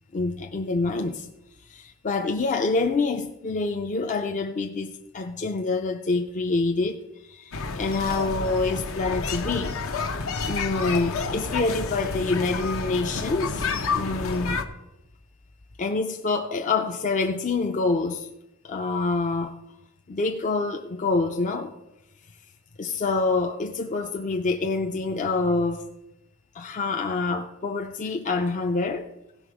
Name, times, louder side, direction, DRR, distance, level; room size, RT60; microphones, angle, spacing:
voice 1, 0.1-1.3 1.6-9.8 10.5-13.7 13.9-14.6 15.8-18.3 18.6-19.6 20.1-21.8 22.8-25.9 26.5-29.1, left 3 dB, 35° left, 0.5 m, -26 dB
sound 1, 7.5-14.7, left 4 dB, 65° left, 0.8 m, -29 dB
16.0 x 6.0 x 4.9 m
head